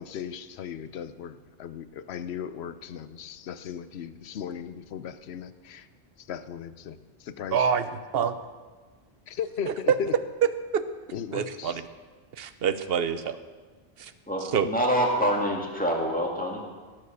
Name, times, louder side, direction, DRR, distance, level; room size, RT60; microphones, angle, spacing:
voice 1, 0.0-5.9 6.3-7.0 7.2-7.7 9.3-10.1 11.1-11.8, left 8 dB, 70° left, 13 dB, 0.9 m, -36 dB
voice 2, 7.5-8.4 9.7-10.0 10.7-10.8 11.3-11.8 12.4-13.4 14.0-14.1 14.5-14.7, right 7 dB, 65° right, 12 dB, 0.9 m, -26 dB
voice 3, 14.3-16.6, equal, 5° left, -1 dB, 2.2 m, -26 dB
17.5 x 7.5 x 6.7 m, 1.4 s
omnidirectional pair, 1.1 m